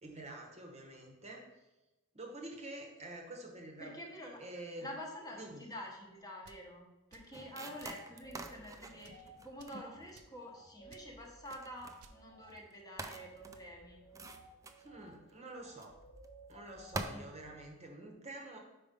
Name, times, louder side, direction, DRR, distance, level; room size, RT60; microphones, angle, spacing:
voice 1, 0.0-1.4 2.1-4.9 5.3-5.6 14.8-15.9 16.5-18.6, right 1 dB, 30° right, 1 dB, 0.9 m, -48 dB
voice 2, 3.8-4.4 4.8-14.0 17.1-17.4, equal, 15° left, -1 dB, 1.0 m, -48 dB
sound 1, 6.4-6.7 7.1-7.4 7.8-8.0 8.4-8.6 9.0-9.2 9.6-9.8 10.1-10.4 10.9-11.1 11.5-11.6 12.0-12.2, right 4 dB, 75° right, 0.5 m, -60 dB
sound 2, 7.3-7.5 8.0-17.7, right 1 dB, 75° left, 1.8 m, -58 dB
sound 3, 7.3-10.5 11.1-12.0 12.5-12.7 13.0-15.3 15.7-15.9 16.2-16.5 16.9-17.0, right 3 dB, 15° right, 0.3 m, -46 dB
4.9 x 4.9 x 5.1 m, 1.0 s
head